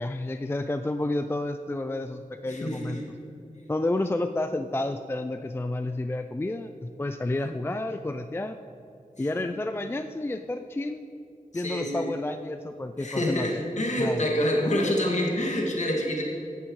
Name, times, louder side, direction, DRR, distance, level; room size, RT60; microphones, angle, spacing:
voice 1, 0.0-3.0 3.7-8.6 9.2-11.1 11.5-13.5 14.0-14.2, left 2 dB, 15° left, 8 dB, 0.4 m, -30 dB
voice 2, 2.5-3.0 11.5-12.1 13.0-16.2, left 1 dB, 55° left, -2 dB, 2.3 m, -27 dB
16.0 x 11.5 x 3.2 m, 2.7 s
wide cardioid pair, 80°, 14 cm